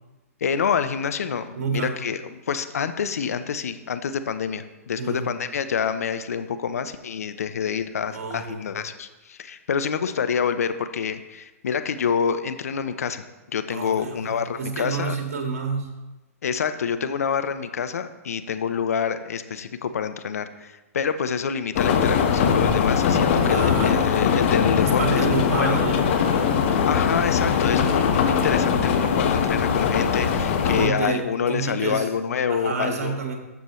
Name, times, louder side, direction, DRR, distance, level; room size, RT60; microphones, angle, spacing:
voice 1, 0.4-13.2 13.5-15.2 16.4-25.8 26.8-33.2, left 7 dB, 70° left, 10 dB, 0.8 m, -27 dB
voice 2, 1.6-2.0 5.0-5.3 8.1-8.7 13.7-15.9 23.4-24.1 24.8-26.1 30.6-31.2 31.5-32.1 32.5-33.4, right 4 dB, 70° right, 3 dB, 2.0 m, -29 dB
sound 1, 21.7-30.9, left 7 dB, 50° left, 1.2 m, -21 dB
12.5 x 7.3 x 3.1 m, 1.1 s
hypercardioid pair, 120°, 8 cm